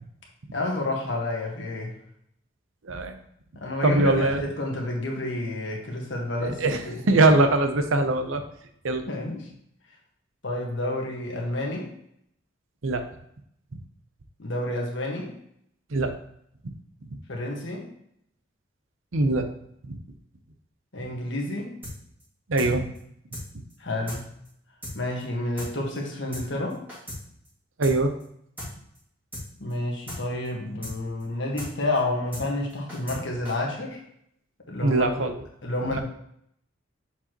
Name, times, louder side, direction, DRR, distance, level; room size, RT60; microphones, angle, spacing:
voice 1, 0.5-1.9 3.5-7.0 9.1-9.5 10.4-11.9 14.4-15.3 17.3-17.9 20.9-21.7 23.8-24.3 24.9-26.8 29.6-34.0 34.7-35.1 35.6-36.0, left 1 dB, 65° left, -1 dB, 1.5 m, -30 dB
voice 2, 2.8-3.2 3.8-4.5 6.4-6.8 7.1-8.4 8.8-9.1 12.8-13.0 15.9-16.1 19.1-19.5 19.9-20.0 22.5-22.9 27.8-28.1 34.8-35.4 35.9-36.0, right 2 dB, 80° right, 7 dB, 0.7 m, -22 dB
sound 1, 21.8-21.9 22.2-22.3 22.6-22.7 22.9-23.0 23.3-23.4 23.7-23.8 24.1-24.2 24.4-24.5 24.8-24.9 25.2-25.3 25.6-25.7 25.9-26.0 26.3-26.4 26.7-27.2 27.4-27.5 27.8-27.9 28.2-28.3 28.6-28.7 28.9-29.0 29.3-29.4 29.7-29.8 30.1-30.2 30.4-30.5 30.8-30.9 31.2-31.3 31.6-31.7 31.9-32.0 32.3-32.4 32.7-33.2 33.4-33.5, left 1 dB, 10° right, 2.1 m, -36 dB
7.0 x 4.7 x 3.0 m, 0.71 s
head